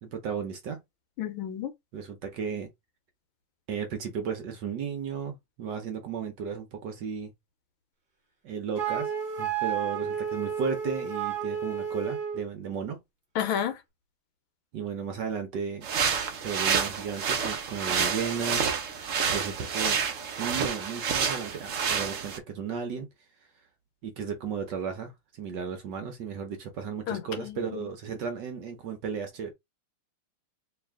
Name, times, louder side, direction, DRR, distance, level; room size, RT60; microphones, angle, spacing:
voice 1, 0.0-0.8 1.9-2.7 3.7-7.3 8.4-9.1 9.4-13.0 14.7-15.8 16.4-18.7 19.3-20.0 20.4-23.1 24.0-25.1 25.4-29.5, right 6 dB, 65° right, 1.2 m, -34 dB
voice 2, 1.2-1.7 13.3-13.8 27.1-27.8, left 9 dB, 75° left, 1.4 m, -31 dB
Wind instrument woodwind instrument, 8.8-12.5, right 8 dB, 35° right, 1.0 m, -31 dB
sound 1, 15.8-22.4, right 6 dB, 90° right, 0.6 m, -29 dB
3.2 x 2.9 x 3.5 m
omnidirectional pair, 2.4 m